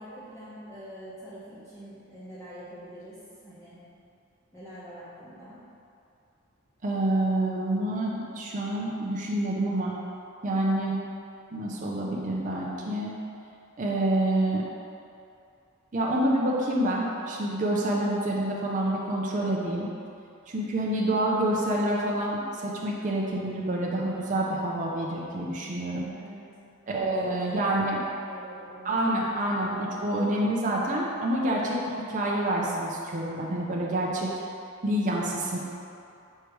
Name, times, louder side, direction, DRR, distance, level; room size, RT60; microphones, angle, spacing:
voice 1, 0.0-3.8 4.5-5.6 26.1-26.6 27.0-27.8 28.2-29.0, equal, 10° left, -15 dB, 1.3 m, -45 dB
voice 2, 6.8-9.9 10.4-11.0 11.5-13.2 13.8-14.6 15.9-19.9 20.5-26.1 26.9-28.0 28.8-31.8 32.1-34.3 34.8-35.6, right 1 dB, 35° right, -4 dB, 0.6 m, -27 dB
6.5 x 3.3 x 4.6 m, 2.6 s
head